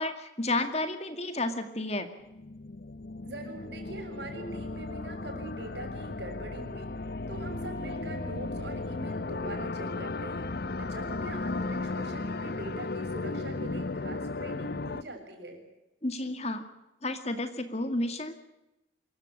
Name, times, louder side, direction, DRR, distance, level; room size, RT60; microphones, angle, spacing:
voice 1, 0.0-2.1 16.0-16.6 17.0-18.3, left 2 dB, 35° left, 9 dB, 2.2 m, -31 dB
sound 1, 2.2-15.0, left 3 dB, 55° left, 0.7 m, -35 dB
voice 2, 3.2-6.9 7.3-10.5 10.8-15.6, right 2 dB, 65° right, 5 dB, 7.0 m, -42 dB
25.5 x 15.5 x 10.0 m, 0.94 s
head